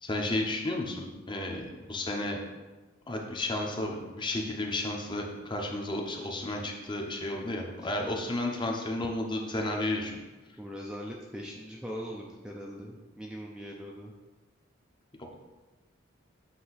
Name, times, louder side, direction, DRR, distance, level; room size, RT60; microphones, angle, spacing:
voice 1, 0.0-2.4 3.1-10.2, left 1 dB, 25° left, 1 dB, 0.9 m, -32 dB
voice 2, 10.6-14.1, equal, 5° right, -2 dB, 0.5 m, -41 dB
8.4 x 2.9 x 5.7 m, 1.2 s
head